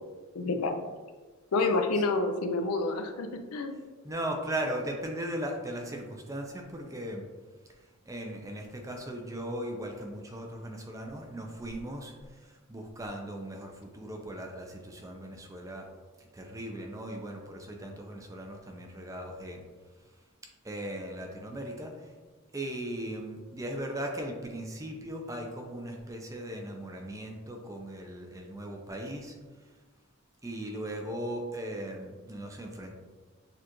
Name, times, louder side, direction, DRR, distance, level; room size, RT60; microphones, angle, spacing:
voice 1, 0.3-0.8 1.5-3.8, left 3 dB, 85° left, 6 dB, 0.5 m, -29 dB
voice 2, 4.0-7.2 7.8-15.9 16.2-19.6 20.6-22.1 22.5-29.4 30.4-32.9, right 1 dB, 15° right, 2 dB, 0.5 m, -38 dB
6.6 x 2.4 x 3.0 m, 1.3 s
head